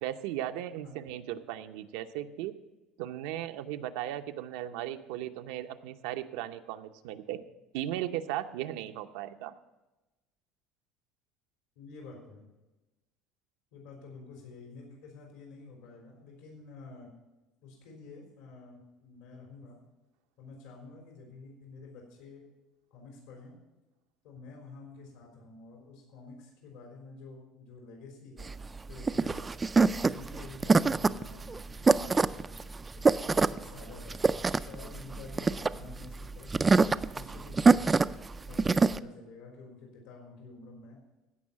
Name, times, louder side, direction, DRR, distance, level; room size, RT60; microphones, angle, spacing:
voice 1, 0.0-2.5 3.0-7.4 7.7-9.5, right 12 dB, 80° right, 8 dB, 0.7 m, -36 dB
voice 2, 11.8-12.5 13.7-17.1 17.6-19.8 20.4-22.5 22.9-23.5 24.2-28.5 28.9-29.6 29.9-32.6 32.9-36.8 37.1-37.9 38.5-41.0, left 3 dB, 80° left, 0 dB, 3.8 m, -49 dB
sound 1, 28.4-39.0, right 4 dB, 15° right, 0.3 m, -25 dB
16.0 x 5.5 x 7.4 m, 1.1 s
cardioid pair, 145°, 0 cm